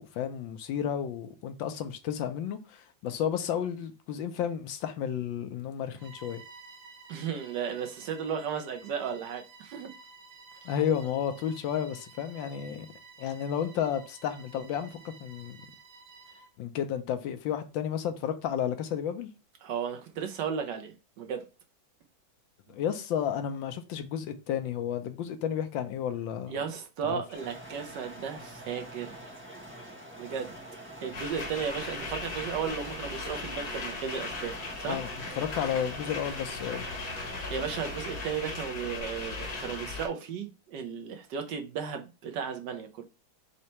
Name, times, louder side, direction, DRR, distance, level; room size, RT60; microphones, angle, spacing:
voice 1, 0.0-6.4 10.6-12.9 13.2-15.7 16.6-19.3 22.7-26.6 27.0-27.2 34.8-35.1 35.4-36.9, left 9 dB, 80° left, 1.3 m, -32 dB
Bowed string instrument, 5.9-16.6, right 4 dB, 85° right, 1.8 m, -52 dB
voice 2, 7.1-9.9 19.6-21.4 26.5-29.2 30.2-30.5 31.0-35.0 37.5-43.0, right 7 dB, 70° right, 1.2 m, -35 dB
sound 1, 27.3-38.3, right 1 dB, 10° right, 0.8 m, -46 dB
sound 2, 31.1-40.1, left 3 dB, 55° left, 1.9 m, -38 dB
4.3 x 2.8 x 4.2 m
omnidirectional pair, 2.2 m